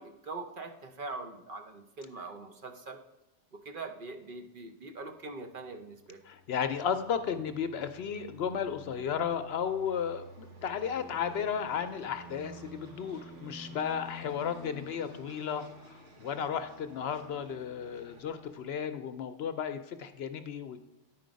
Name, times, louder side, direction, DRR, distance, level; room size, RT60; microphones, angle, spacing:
voice 1, 0.0-3.0 3.5-6.2, right 3 dB, 50° right, 6 dB, 0.8 m, -42 dB
sound 1, 5.7-18.9, left 1 dB, 75° right, 1.4 m, -50 dB
voice 2, 6.2-20.8, left 7 dB, 65° left, 10 dB, 0.8 m, -34 dB
10.0 x 4.5 x 5.1 m, 0.98 s
omnidirectional pair, 1.2 m